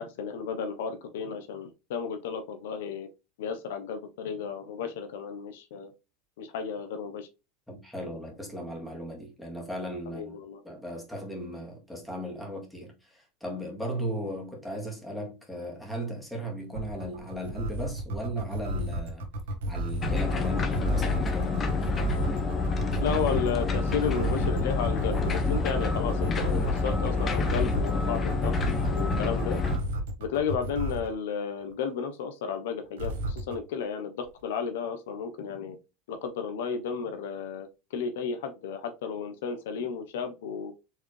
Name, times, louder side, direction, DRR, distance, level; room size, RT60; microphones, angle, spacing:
voice 1, 0.0-3.1 3.4-5.9 6.4-7.3 10.1-10.6 23.0-29.6 30.2-35.8 36.1-40.7, left 6 dB, 85° left, 0.9 m, -33 dB
voice 2, 7.7-10.4 10.6-19.3 19.7-21.7, right 1 dB, 5° left, 2.1 m, -37 dB
sound 1, 16.7-31.1 33.0-33.6, right 1 dB, 90° right, 1.3 m, -32 dB
sound 2, 20.0-29.8, left 4 dB, 30° left, 1.0 m, -28 dB
4.7 x 3.5 x 3.2 m
supercardioid pair, 115°, 0 cm